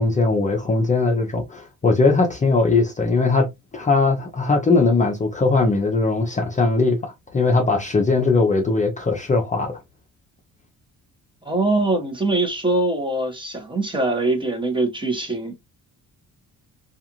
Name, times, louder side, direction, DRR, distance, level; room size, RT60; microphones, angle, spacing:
voice 1, 0.0-9.8, left 3 dB, 20° left, 0.5 m, -20 dB
voice 2, 11.4-15.5, right 2 dB, 15° right, 0.9 m, -22 dB
2.4 x 2.4 x 2.8 m
cardioid pair, 115°, 35 cm